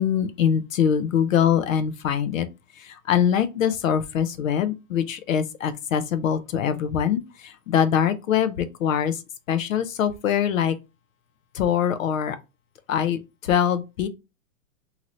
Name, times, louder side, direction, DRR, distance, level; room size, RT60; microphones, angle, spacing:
voice 1, 0.0-2.5 3.1-7.2 7.7-9.1 9.5-10.7 11.6-12.4 12.9-13.2 13.5-14.1, left 8 dB, 70° left, 0.6 m, -23 dB
2.8 x 2.6 x 3.0 m
hypercardioid pair, 175°, 41 cm